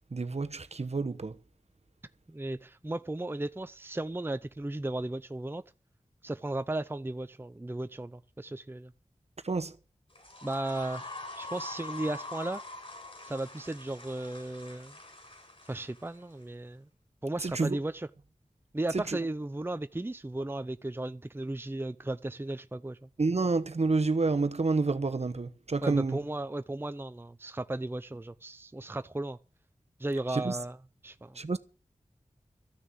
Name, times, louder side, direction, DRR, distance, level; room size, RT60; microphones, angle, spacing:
voice 1, 0.1-1.4 9.4-9.8 17.4-17.8 18.9-19.2 23.2-26.2 30.3-30.6 31.3-31.6, right 3 dB, 55° right, 1.0 m, -29 dB
voice 2, 2.3-5.6 6.2-8.9 10.4-12.6 13.2-15.0 15.7-16.9 17.2-18.1 18.7-23.0 25.8-29.4 30.0-30.8 31.0-31.4, right 2 dB, 15° right, 0.6 m, -35 dB
sound 1, 10.1-16.4, left 2 dB, 45° left, 6.7 m, -44 dB
14.0 x 6.5 x 9.2 m
wide cardioid pair, 50°, 13 cm